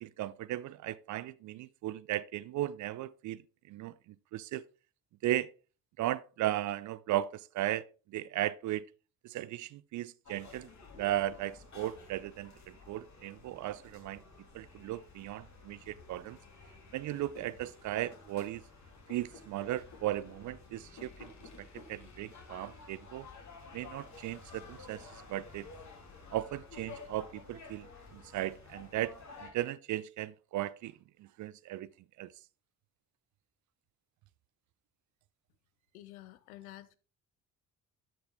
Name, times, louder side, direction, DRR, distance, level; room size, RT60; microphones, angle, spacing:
voice 1, 0.0-3.4 3.7-3.9 4.3-4.6 5.2-5.5 6.0-7.9 8.1-8.8 9.2-10.7 11.0-12.5 12.9-14.2 14.5-16.4 16.9-18.6 19.1-21.3 21.6-23.3 23.7-25.7 26.3-27.9 28.1-29.1 29.4-31.9 32.2-32.3, right 14 dB, 45° right, 0.5 m, -36 dB
sound 1, 10.3-29.5, left 4 dB, 40° left, 3.0 m, -52 dB
voice 2, 35.9-37.0, left 15 dB, 70° left, 0.7 m, -50 dB
12.0 x 5.6 x 3.5 m
figure-of-eight pair, 45°, 44 cm